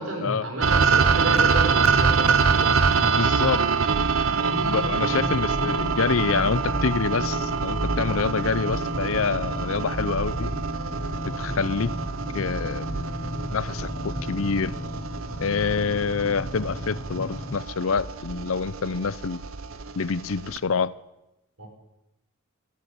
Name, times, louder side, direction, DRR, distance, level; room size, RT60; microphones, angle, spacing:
voice 1, 0.0-2.8 21.6-21.7, right 1 dB, 90° right, 2 dB, 5.1 m, -30 dB
sound 1, 0.6-20.6, right 5 dB, 75° right, 0.9 m, -25 dB
voice 2, 3.0-3.6 4.6-10.5 11.3-12.0 12.3-12.9 13.5-14.8 15.4-19.4 20.0-20.9, left 5 dB, 75° left, 18 dB, 0.6 m, -26 dB
sound 2, 4.5-17.6, left 1 dB, 25° left, 0.8 m, -34 dB
14.0 x 10.5 x 10.0 m, 0.95 s
head